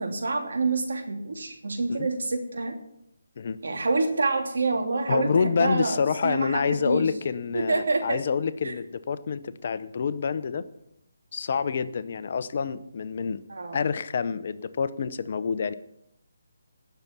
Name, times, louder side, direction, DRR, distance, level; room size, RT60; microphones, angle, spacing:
voice 1, 0.0-2.7 3.6-7.0 7.5-8.2 8.6-8.7 13.5-13.8, right 3 dB, 70° right, 3 dB, 3.0 m, -27 dB
voice 2, 5.1-10.6 11.3-13.4 13.7-15.7, left 6 dB, 45° left, 13 dB, 0.7 m, -27 dB
18.5 x 6.8 x 6.1 m, 0.78 s
hypercardioid pair, 165°, 0 cm